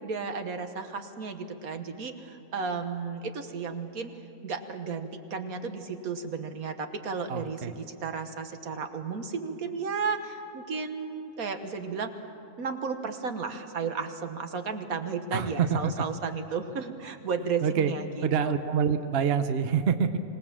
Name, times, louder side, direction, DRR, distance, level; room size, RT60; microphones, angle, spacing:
voice 1, 0.0-4.1 4.4-12.1 12.6-18.5, right 5 dB, 75° right, 7 dB, 1.7 m, -33 dB
voice 2, 7.3-7.7 15.3-16.0 17.6-17.9 18.2-20.2, right 7 dB, 50° right, 9 dB, 0.9 m, -26 dB
25.5 x 18.5 x 7.4 m, 2.8 s
omnidirectional pair, 1.5 m